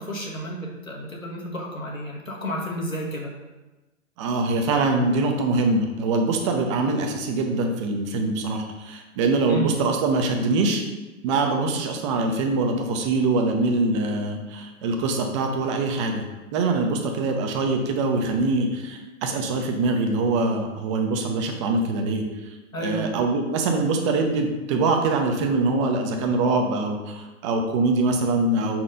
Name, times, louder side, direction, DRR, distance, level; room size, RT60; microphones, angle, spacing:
voice 1, 0.0-3.3 9.5-9.7 22.7-23.0, right 1 dB, 85° left, -3 dB, 1.6 m, -31 dB
voice 2, 4.2-10.8 11.2-28.8, right 3 dB, 25° right, 4 dB, 0.6 m, -24 dB
6.4 x 4.3 x 3.8 m, 1.1 s
figure-of-eight pair, 110°, 40 cm